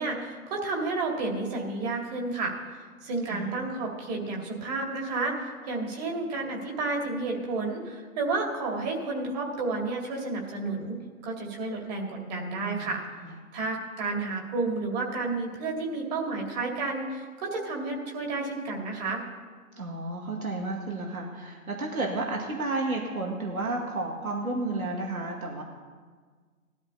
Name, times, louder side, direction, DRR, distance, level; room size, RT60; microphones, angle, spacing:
voice 1, 0.0-2.5 3.0-11.0 11.2-13.0 13.5-19.2, right 3 dB, 30° right, 0 dB, 2.4 m, -31 dB
voice 2, 19.8-25.6, right 2 dB, 75° right, 0 dB, 2.2 m, -32 dB
19.0 x 12.5 x 2.8 m, 1.5 s
figure-of-eight pair, 140°, 42 cm